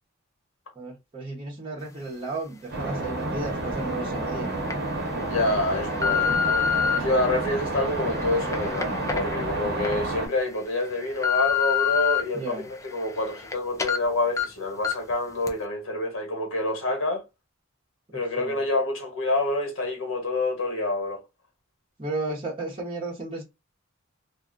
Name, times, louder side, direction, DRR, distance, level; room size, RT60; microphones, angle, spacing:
voice 1, 0.7-4.5 12.3-12.7 18.1-18.6 22.0-23.4, right 2 dB, 25° right, 1.0 m, -34 dB
sound 1, 2.7-10.3, right 2 dB, 55° right, 1.1 m, -30 dB
sound 2, 3.7-3.8 4.4-4.7 5.4-7.0 7.6-9.9 10.4-10.5 10.9-12.2 12.6-13.5 13.8-14.0 14.4-14.5 14.8-15.1 15.5-15.6, left 7 dB, 15° left, 0.4 m, -27 dB
voice 2, 5.2-17.2 18.1-21.2, left 2 dB, 75° left, 1.4 m, -27 dB
2.7 x 2.4 x 2.6 m
head